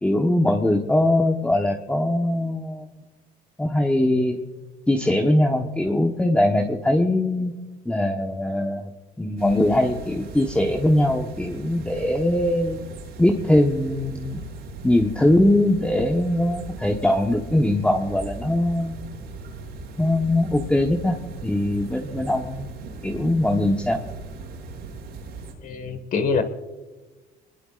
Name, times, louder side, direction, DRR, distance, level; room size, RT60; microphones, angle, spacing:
voice 1, 0.0-2.9 3.6-4.4 4.9-7.6 7.8-8.9 9.2-12.8 13.2-14.4 14.8-19.1 20.0-22.7 23.0-24.0, left 1 dB, 5° left, 2 dB, 1.2 m, -21 dB
sound 1, 9.4-25.5, right 3 dB, 75° right, 6.3 m, -38 dB
voice 2, 25.6-26.4, left 5 dB, 55° left, 8 dB, 1.7 m, -24 dB
26.5 x 21.0 x 2.5 m, 1.2 s
cardioid pair, 110°, 17 cm